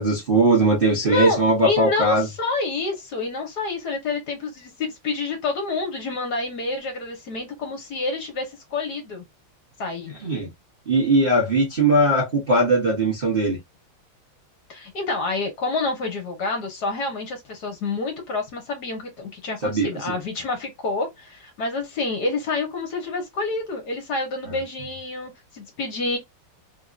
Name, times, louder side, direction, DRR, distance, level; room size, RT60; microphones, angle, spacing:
voice 1, 0.0-2.3 10.2-10.5 10.9-13.6 19.6-20.1 24.5-24.6, right 2 dB, 35° right, 0.9 m, -20 dB
voice 2, 1.0-9.2 9.8-10.1 14.7-26.2, left 3 dB, 55° left, 1.5 m, -28 dB
3.6 x 2.7 x 2.4 m
omnidirectional pair, 2.3 m